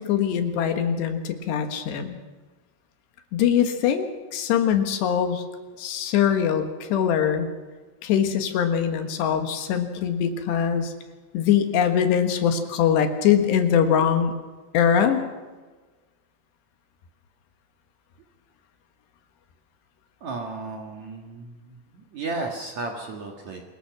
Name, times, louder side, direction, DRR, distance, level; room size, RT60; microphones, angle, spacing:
voice 1, 0.0-2.2 3.3-5.4 5.8-7.5 8.0-10.9 11.3-14.3 14.7-15.2, left 8 dB, 70° left, 7 dB, 3.5 m, -22 dB
voice 2, 20.2-23.6, right 3 dB, 55° right, 2 dB, 2.2 m, -34 dB
25.5 x 21.0 x 6.0 m, 1.3 s
omnidirectional pair, 5.3 m